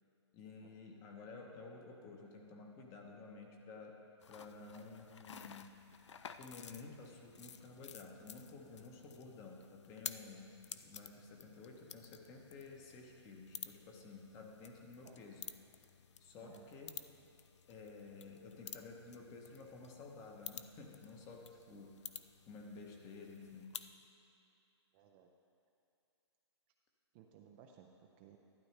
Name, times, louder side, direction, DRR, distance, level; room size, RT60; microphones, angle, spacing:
voice 1, 0.3-4.0 4.3-5.8 6.4-15.5 16.2-16.9 17.7-22.1 22.5-23.8, left 4 dB, 20° left, 2 dB, 0.9 m, -53 dB
sound 1, 4.2-23.9, left 7 dB, 80° left, 0.5 m, -53 dB
voice 2, 24.9-25.3 27.1-28.4, right 9 dB, 25° right, 2 dB, 0.4 m, -60 dB
12.0 x 9.7 x 3.3 m, 2.7 s
hypercardioid pair, 155°, 15 cm